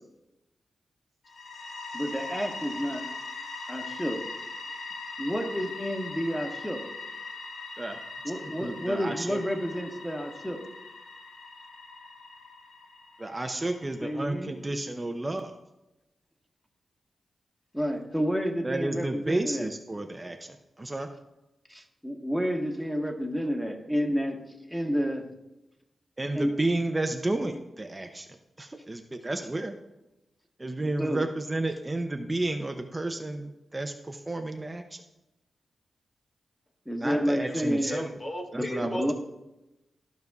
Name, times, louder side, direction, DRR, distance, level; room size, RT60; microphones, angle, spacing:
sound 1, 1.2-14.0, left 3 dB, 85° left, 1.3 m, -41 dB
voice 1, 1.9-3.1 3.7-4.2 5.2-6.8 8.2-10.6 14.0-14.5 17.7-19.7 21.7-24.4 24.7-25.3 26.3-26.6 31.0-31.3 36.9-37.9 38.5-39.1, equal, 5° left, 2 dB, 1.4 m, -30 dB
voice 2, 8.4-9.4 13.2-15.5 18.6-21.1 26.2-29.8 30.6-35.0 37.0-38.1 38.5-39.1, right 2 dB, 25° right, 5 dB, 0.6 m, -32 dB
voice 3, 37.8-39.1, equal, 35° left, 3 dB, 1.0 m, -35 dB
14.0 x 5.2 x 2.3 m, 0.95 s
cardioid pair, 70°, 0 cm